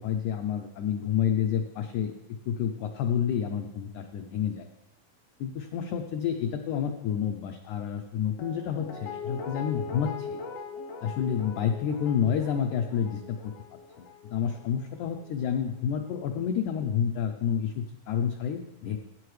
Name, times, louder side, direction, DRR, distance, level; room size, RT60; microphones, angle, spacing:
voice 1, 0.0-2.1 2.5-4.7 5.4-10.4 11.0-13.5 14.0-19.0, left 8 dB, 90° left, 5 dB, 1.7 m, -29 dB
Guitar, 8.4-15.4 15.7-15.8, left 5 dB, 70° left, 2.2 m, -41 dB
16.0 x 8.5 x 3.2 m, 1.0 s
omnidirectional pair, 4.2 m